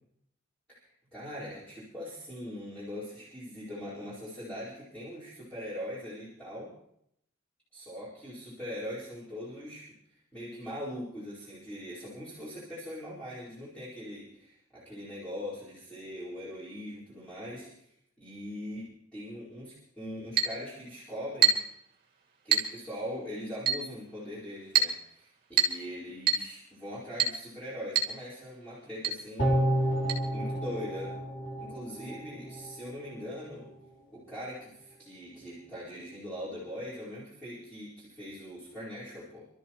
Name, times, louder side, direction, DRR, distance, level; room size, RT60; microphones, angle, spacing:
voice 1, 0.7-6.7 7.7-9.9 10.3-21.6 22.4-29.6 30.3-31.1 31.6-33.7 34.1-39.5, equal, 5° left, -11 dB, 4.6 m, -41 dB
Chink clink, 20.4-20.6 21.4-21.7 22.5-22.7 23.7-23.9 24.7-25.0 25.6-25.8 26.3-26.5 27.2-27.4 27.9-28.2 28.4-28.5 29.0-29.2 30.1-30.2, right 6 dB, 45° right, 2.3 m, -25 dB
sound 1, 29.4-32.7 33.1-33.2, equal, 45° left, 3.0 m, -30 dB
27.0 x 13.0 x 3.1 m, 0.72 s
head